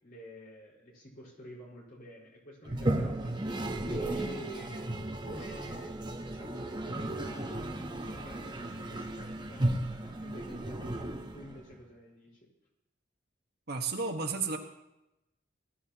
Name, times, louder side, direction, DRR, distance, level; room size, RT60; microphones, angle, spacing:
voice 1, 0.0-4.8 5.2-5.9 6.3-9.7 10.0-12.4, equal, 50° left, -2 dB, 4.7 m, -49 dB
Toilet flush, 2.6-11.8, right 1 dB, 25° right, 1.0 m, -35 dB
voice 2, 13.7-14.6, right 4 dB, 55° right, 3 dB, 1.4 m, -32 dB
20.5 x 13.5 x 2.9 m, 0.91 s
head